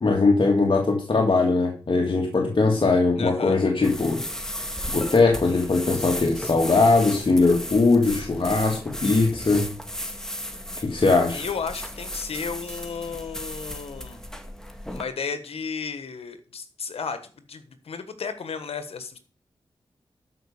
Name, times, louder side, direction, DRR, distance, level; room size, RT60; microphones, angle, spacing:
voice 1, 0.0-4.2 4.9-9.7 10.8-11.4, left 3 dB, 55° left, 2 dB, 1.8 m, -20 dB
voice 2, 3.2-3.6 11.3-14.2 14.9-19.2, left 5 dB, 90° left, 10 dB, 1.4 m, -33 dB
sound 1, 3.8-15.0, equal, 5° left, 1.9 m, -35 dB
12.5 x 5.2 x 6.5 m, 0.39 s
cardioid pair, 40°, 10 cm